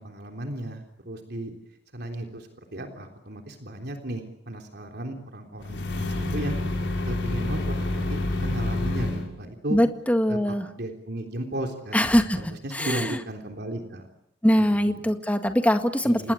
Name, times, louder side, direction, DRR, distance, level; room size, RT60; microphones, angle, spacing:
voice 1, 0.0-1.5 1.9-6.6 7.0-9.8 10.3-14.1 14.6-15.1 16.0-16.3, right 1 dB, 60° right, 3 dB, 3.5 m, -35 dB
sound 1, 5.6-9.3, left 2 dB, 75° left, 5.8 m, -28 dB
voice 2, 9.7-10.7 11.9-12.4 12.7-13.2 14.4-16.3, equal, 10° left, 7 dB, 1.8 m, -22 dB
28.5 x 20.0 x 8.6 m, 0.78 s
head